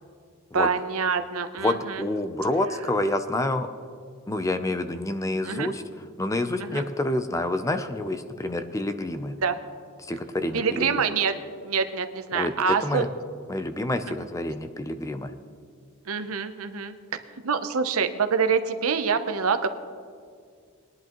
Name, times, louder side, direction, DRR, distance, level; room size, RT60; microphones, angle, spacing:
voice 1, 0.5-2.0 5.4-5.7 6.6-6.8 9.4-9.6 10.5-11.3 11.6-13.1 16.1-16.9 17.4-19.7, right 5 dB, 70° right, 9 dB, 0.7 m, -25 dB
voice 2, 1.6-3.7 4.3-5.8 6.2-9.3 10.0-11.0 12.3-12.5 12.8-13.1 13.5-15.3, left 1 dB, 15° left, 9 dB, 0.5 m, -28 dB
20.5 x 10.5 x 3.0 m, 2.1 s
head